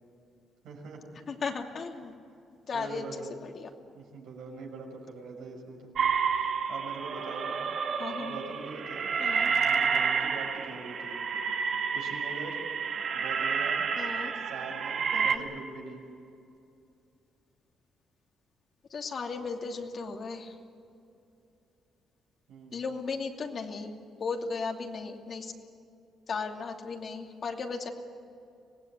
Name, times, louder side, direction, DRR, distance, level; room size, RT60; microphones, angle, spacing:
voice 1, 0.6-1.2 2.7-3.4 3.9-5.9 6.4-7.6 8.2-11.2 11.9-12.6 13.1-13.9 14.3-16.0 22.5-22.8, right 3 dB, 85° right, 0 dB, 6.1 m, -43 dB
voice 2, 1.3-2.1 2.7-3.0 3.4-3.7 8.0-8.3 9.2-9.5 14.0-14.3 15.1-15.4 18.9-20.5 22.7-23.9 24.2-25.5 26.3-27.9, left 4 dB, 50° left, 2 dB, 2.7 m, -36 dB
sound 1, 6.0-15.4, right 6 dB, 65° right, 2.2 m, -30 dB
25.5 x 18.0 x 9.5 m, 2.6 s
cardioid pair, 90°, 0 cm